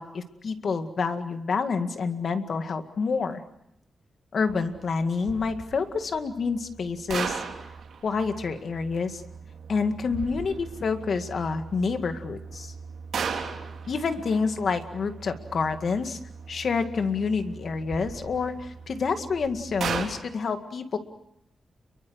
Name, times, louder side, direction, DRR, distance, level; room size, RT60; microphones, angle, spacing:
voice 1, 0.0-3.4 4.3-7.4 8.0-9.2 9.7-12.7 13.9-16.2 16.5-21.0, left 5 dB, 55° left, 7 dB, 2.0 m, -28 dB
sound 1, 4.4-20.0, right 6 dB, 75° right, 3.6 m, -38 dB
30.0 x 23.0 x 6.4 m, 0.78 s
wide cardioid pair, 135°, 0 cm